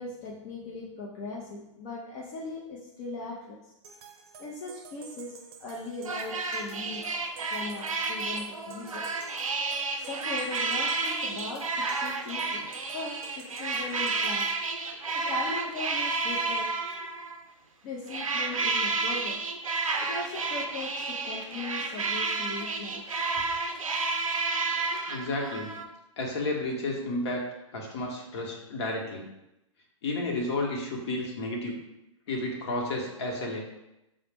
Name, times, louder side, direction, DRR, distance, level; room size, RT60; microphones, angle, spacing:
voice 1, 0.0-3.7 4.4-7.2 7.5-9.1 10.0-12.6 12.9-14.5 15.1-16.8 17.8-19.5 20.0-23.8, left 3 dB, 35° left, -3 dB, 0.5 m, -39 dB
sound 1, 3.8-14.6, right 6 dB, 45° right, 0.6 m, -50 dB
sound 2, 6.1-17.4 18.1-25.9, right 3 dB, 90° right, 0.5 m, -31 dB
voice 2, 25.1-25.7 26.2-27.5 27.7-29.3 30.0-31.8 32.3-33.6, left 2 dB, 55° left, 0 dB, 1.0 m, -31 dB
4.7 x 2.1 x 3.3 m, 0.90 s
hypercardioid pair, 120°, 17 cm